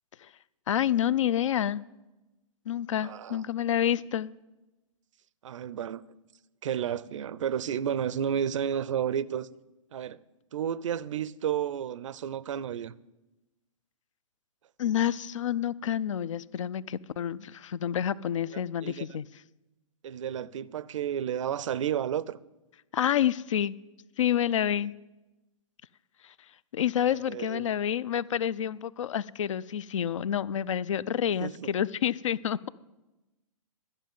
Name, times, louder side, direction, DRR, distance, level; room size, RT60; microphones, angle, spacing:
voice 1, 0.7-1.8 2.7-4.3 14.8-19.3 22.9-23.7 24.2-24.9 26.2-26.3 26.7-32.7, left 10 dB, 60° left, 0.4 m, -28 dB
voice 2, 3.0-3.4 5.4-6.0 6.6-9.5 9.9-10.2 10.5-12.9 18.5-19.1 20.0-22.4 27.3-27.7 31.4-31.7, right 9 dB, 60° right, 0.5 m, -32 dB
12.0 x 6.5 x 9.2 m
figure-of-eight pair, 115°, 18 cm